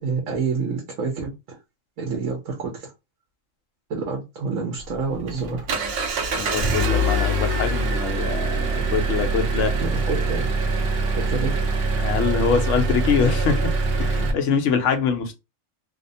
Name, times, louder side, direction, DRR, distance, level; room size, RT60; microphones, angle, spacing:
voice 1, 0.0-1.6 2.0-2.9 3.9-5.6 9.8-10.5 11.1-11.5, right 4 dB, 85° right, 1.1 m, -28 dB
Engine, 4.8-14.3, right 2 dB, 60° right, 0.7 m, -24 dB
voice 2, 6.3-9.7 12.0-15.3, left 6 dB, 70° left, 0.9 m, -24 dB
2.8 x 2.1 x 2.6 m
omnidirectional pair, 1.3 m